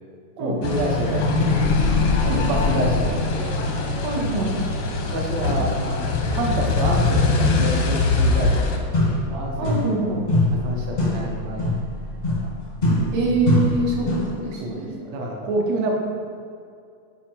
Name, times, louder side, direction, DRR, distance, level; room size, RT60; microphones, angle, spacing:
voice 1, 0.4-1.7 2.1-3.5 4.3-4.6 4.9-9.7 10.6-11.6 12.3-12.5 12.8-13.2 14.0-14.1 14.6-14.8 15.1-15.9, right 1 dB, 65° right, 0 dB, 2.0 m, -28 dB
sound 1, 0.6-8.8, left 3 dB, 75° left, 1.1 m, -22 dB
voice 2, 4.0-4.6 9.6-10.3 12.9-15.0, right 3 dB, 85° right, -3 dB, 2.9 m, -25 dB
sound 2, 8.9-10.0 10.3-14.4, left 1 dB, 40° left, 0.5 m, -23 dB
9.5 x 5.2 x 4.4 m, 2.4 s
omnidirectional pair, 3.6 m